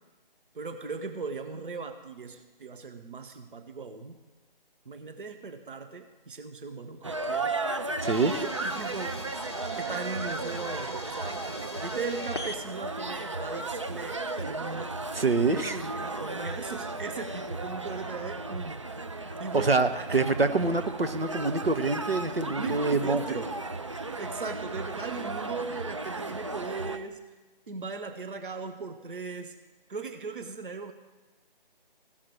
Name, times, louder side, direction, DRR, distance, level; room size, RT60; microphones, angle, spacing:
voice 1, 0.5-4.2 4.9-7.6 8.3-9.3 9.8-11.4 11.7-15.0 15.5-18.8 19.4-20.2 22.4-23.5 24.2-27.2 27.7-29.6 29.9-30.9, right 4 dB, 60° right, 6 dB, 1.0 m, -38 dB
sound 1, 7.0-27.0, right 3 dB, 35° right, 0.4 m, -35 dB
sound 2, 8.0-16.2, left 2 dB, 30° left, 0.6 m, -45 dB
voice 2, 8.0-8.3 15.1-15.8 19.2-23.4, right 3 dB, 80° right, 8 dB, 1.0 m, -26 dB
16.5 x 5.7 x 4.8 m, 1.2 s
figure-of-eight pair, 150°, 29 cm